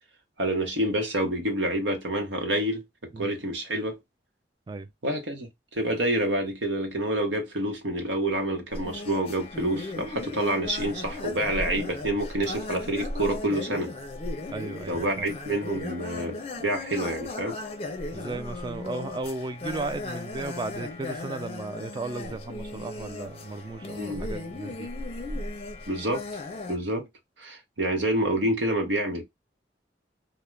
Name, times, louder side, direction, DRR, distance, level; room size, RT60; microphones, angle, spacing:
voice 1, 0.4-2.8 3.2-4.0 5.0-13.9 14.9-17.5 24.0-24.3 25.3-25.4 25.9-26.2 26.7-27.1 27.4-29.2, right 1 dB, 85° right, 0.8 m, -28 dB
sound 1, 8.7-26.8, left 2 dB, 35° left, 0.5 m, -36 dB
voice 2, 14.5-15.3 18.1-24.9, right 3 dB, 25° right, 0.3 m, -35 dB
2.4 x 2.1 x 3.1 m
head